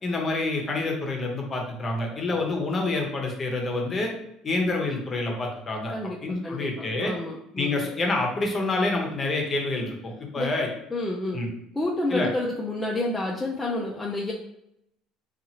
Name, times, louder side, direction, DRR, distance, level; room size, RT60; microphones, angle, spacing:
voice 1, 0.0-4.1 4.4-5.9 6.2-7.1 7.6-10.7 11.3-11.5 12.1-12.3, left 2 dB, 30° left, 1 dB, 0.8 m, -27 dB
voice 2, 5.9-7.9 10.4-10.5 10.9-11.4 11.7-14.3, left 2 dB, 15° left, -3 dB, 0.5 m, -29 dB
2.7 x 2.4 x 2.8 m, 0.79 s
supercardioid pair, 100°, 0 cm